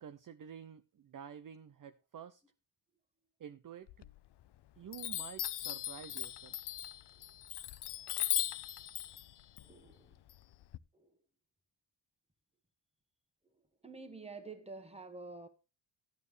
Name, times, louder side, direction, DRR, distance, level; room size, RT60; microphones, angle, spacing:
voice 1, 0.0-2.4 3.4-3.9 4.8-6.6, right 8 dB, 40° right, 0.5 m, -50 dB
Chime, 3.9-4.6 4.9-10.8, left 12 dB, 60° left, 0.5 m, -39 dB
voice 2, 9.6-10.2 10.9-11.1 13.8-15.5, right 3 dB, 10° right, 1.4 m, -49 dB
13.0 x 8.8 x 3.2 m
wide cardioid pair, 115°, 49 cm